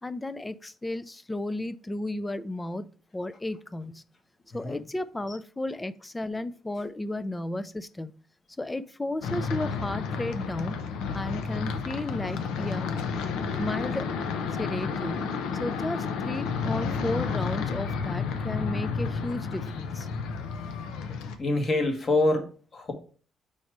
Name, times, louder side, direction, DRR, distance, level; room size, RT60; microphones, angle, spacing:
voice 1, 0.0-4.0 4.5-8.1 8.6-10.9 11.1-12.9 13.6-14.1 14.6-15.3 15.6-20.1, left 1 dB, 15° left, 0.4 m, -33 dB
sound 1, 9.2-21.4, left 5 dB, 85° left, 0.7 m, -31 dB
voice 2, 21.1-22.9, left 2 dB, 40° left, 1.4 m, -26 dB
4.9 x 4.1 x 4.6 m
cardioid pair, 100°, 0 cm